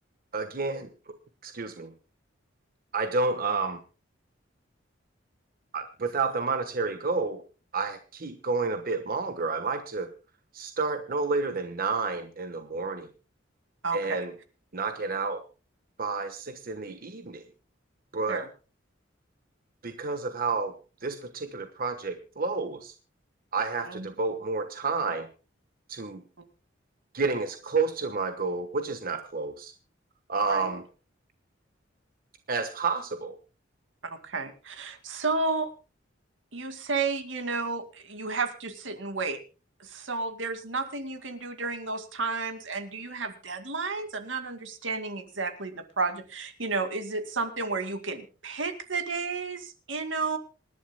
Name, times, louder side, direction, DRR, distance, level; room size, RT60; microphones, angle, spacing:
voice 1, 0.3-0.9 1.4-1.9 2.9-3.8 5.7-7.4 7.7-10.1 10.5-13.1 13.9-14.3 14.7-15.4 16.0-17.4 18.1-18.5 19.8-20.7 21.0-22.9 23.5-25.3 25.9-26.2 27.1-29.7 30.3-30.8 32.5-33.4, right 4 dB, 50° right, 8 dB, 1.2 m, -30 dB
voice 2, 13.8-14.2 18.3-18.5 23.8-24.1 30.5-30.8 34.0-35.7 36.5-39.4 39.8-50.4, right 4 dB, 85° right, 8 dB, 2.1 m, -32 dB
27.0 x 11.0 x 2.2 m, 0.33 s
head